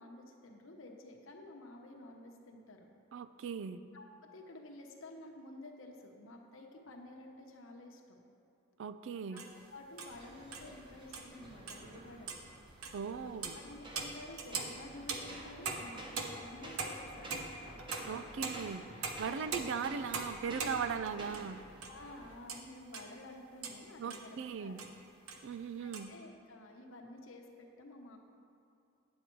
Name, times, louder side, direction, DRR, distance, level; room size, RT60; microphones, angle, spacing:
voice 1, 0.0-2.9 3.9-4.1 4.3-8.2 9.3-9.4 9.7-12.4 13.2-17.4 19.3-19.5 20.9-21.0 21.9-24.7 25.8-28.2, left 2 dB, 65° left, 1 dB, 1.0 m, -51 dB
voice 2, 3.1-3.8 8.8-9.4 12.9-13.6 18.1-21.6 24.0-24.8 25.4-26.1, right 6 dB, 60° right, 12 dB, 0.3 m, -39 dB
sound 1, 9.4-9.5 10.0-10.1 10.5-10.6 11.1-11.3 11.7-11.9 12.2-12.4 12.8-13.0 13.4-13.6 14.0-21.6 21.8-21.9 22.3-23.1 23.6-23.8 24.1-24.3 24.8-24.9 25.3-26.0, right 4 dB, 80° right, 0.9 m, -41 dB
sound 2, 10.1-22.3, right 1 dB, 20° right, 0.8 m, -51 dB
9.4 x 7.4 x 4.6 m, 2.7 s
head